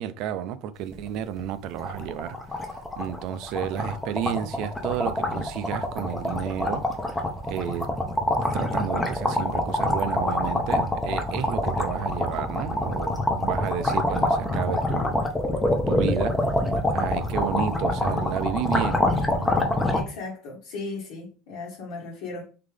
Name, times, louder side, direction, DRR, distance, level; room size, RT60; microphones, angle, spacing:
voice 1, 0.0-6.9 7.5-7.9 8.5-15.3 15.9-16.4 16.9-19.6, right 10 dB, 50° right, 0.5 m, -31 dB
sound 1, 0.9-1.1 1.4-1.5 1.8-20.0, left 1 dB, 10° left, 0.7 m, -26 dB
voice 2, 19.9-22.5, left 3 dB, 65° left, 1.3 m, -36 dB
3.8 x 3.7 x 3.3 m
cardioid pair, 165°, 0 cm